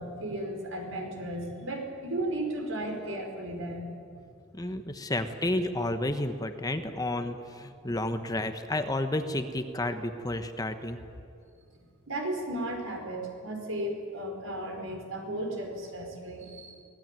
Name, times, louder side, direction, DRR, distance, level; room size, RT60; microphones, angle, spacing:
voice 1, 0.0-4.0 12.1-16.8, right 1 dB, 80° right, 3 dB, 4.9 m, -35 dB
voice 2, 4.5-11.0, left 1 dB, 20° left, 8 dB, 1.2 m, -31 dB
23.5 x 18.5 x 9.2 m, 2.4 s
head